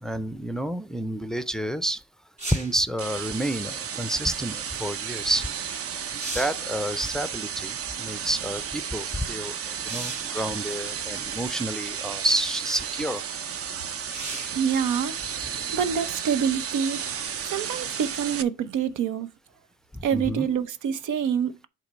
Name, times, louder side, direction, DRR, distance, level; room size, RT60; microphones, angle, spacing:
voice 1, 0.0-2.0 2.5-5.5 6.1-13.2 19.9-20.5, right 1 dB, ahead, 0.4 m, -29 dB
sound 1, 2.4-2.8 5.5-5.6 6.0-6.7 9.8-10.4 11.4-11.5 14.1-14.6 18.2-18.3, right 2 dB, 25° right, 2.4 m, -36 dB
sound 2, 3.0-18.4, right 7 dB, 50° right, 0.7 m, -33 dB
voice 2, 14.5-15.4 15.7-17.1 17.4-19.3 20.0-21.7, right 7 dB, 85° right, 0.7 m, -26 dB
8.2 x 3.2 x 5.3 m
cardioid pair, 90°, 30 cm